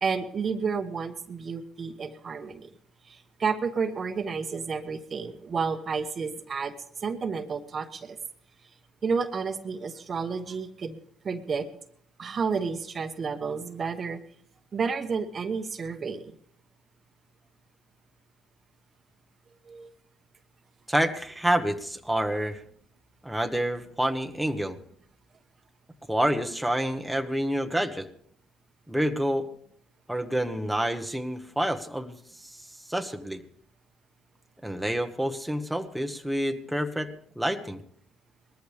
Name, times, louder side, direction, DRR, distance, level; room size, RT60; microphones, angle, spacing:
voice 1, 0.0-2.7 3.1-8.2 9.0-11.0 11.2-11.7 12.2-14.2 14.7-16.3 19.7-19.9, right 5 dB, 40° right, 8 dB, 1.2 m, -31 dB
voice 2, 20.9-22.6 23.2-24.8 26.1-28.1 28.9-29.5 30.1-32.2 32.4-32.6 32.9-33.4 34.6-37.8, right 1 dB, 5° right, 5 dB, 1.3 m, -28 dB
19.5 x 14.0 x 3.5 m, 0.63 s
supercardioid pair, 70°, 0 cm